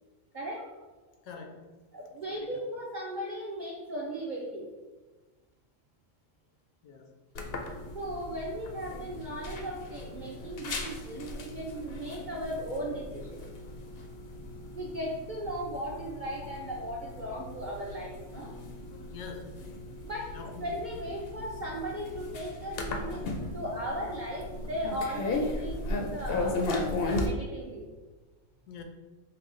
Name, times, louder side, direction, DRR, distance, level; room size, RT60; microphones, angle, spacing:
voice 1, 0.3-0.8 1.9-4.7 7.9-13.4 14.7-18.5 20.0-27.9, equal, 55° right, -3 dB, 0.5 m, -37 dB
voice 2, 1.2-1.7 2.3-2.5 6.8-7.1 19.1-19.6 20.3-20.7 28.7-28.8, left 5 dB, 85° left, 4 dB, 1.1 m, -44 dB
sound 1, 7.4-27.3, left 2 dB, 60° left, 0.7 m, -37 dB
4.8 x 2.3 x 3.7 m, 1.2 s
omnidirectional pair, 1.4 m